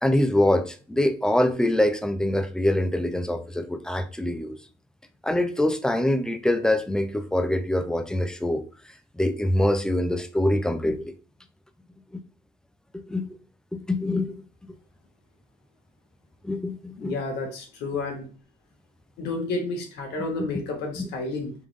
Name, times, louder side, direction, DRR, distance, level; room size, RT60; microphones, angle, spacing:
voice 1, 0.0-4.6 5.2-8.6 9.1-11.1 12.1-12.2 12.9-13.4 13.7-14.4 16.4-17.2 20.4-20.5 21.0-21.1, left 1 dB, 5° left, 0.5 m, -24 dB
voice 2, 17.0-18.3 19.2-21.5, left 3 dB, 80° left, 1.4 m, -31 dB
3.6 x 3.0 x 3.2 m
cardioid pair, 110°, 17 cm